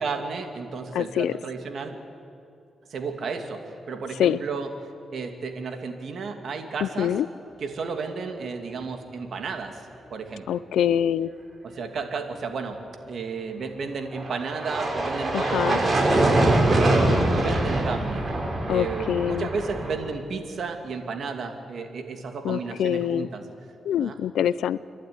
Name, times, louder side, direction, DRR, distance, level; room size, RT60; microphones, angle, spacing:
voice 1, 0.0-2.0 2.9-4.7 5.1-7.1 7.6-9.8 10.1-10.6 11.6-12.8 13.1-18.2 18.7-23.4 24.0-24.2, right 4 dB, 65° right, 5 dB, 2.5 m, -33 dB
voice 2, 0.9-1.3 4.2-4.4 6.8-7.3 10.5-11.3 15.3-15.8 18.7-19.5 22.4-23.3 23.8-24.8, left 10 dB, 85° left, 18 dB, 0.5 m, -24 dB
sound 1, 14.1-20.0, right 1 dB, 40° right, 5.5 m, -23 dB
29.5 x 11.5 x 9.8 m, 2.5 s
cardioid pair, 70°, 0 cm